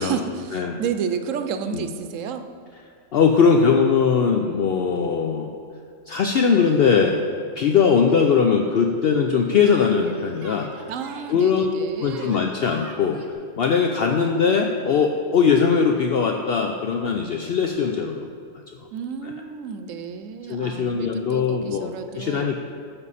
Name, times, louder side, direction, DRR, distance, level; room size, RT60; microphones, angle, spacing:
voice 1, 0.0-2.5 10.9-12.4 18.9-22.6, right 6 dB, 85° right, 8 dB, 1.0 m, -31 dB
voice 2, 3.1-5.5 6.1-7.2 7.6-10.7 11.3-11.7 12.0-18.3 19.2-19.3 20.5-22.6, left 6 dB, 60° left, 3 dB, 0.7 m, -20 dB
Yell, 8.1-8.4 9.6-11.3 12.0-13.3, right 2 dB, 55° right, 1.2 m, -44 dB
12.5 x 7.1 x 4.1 m, 2.2 s
omnidirectional pair, 1.3 m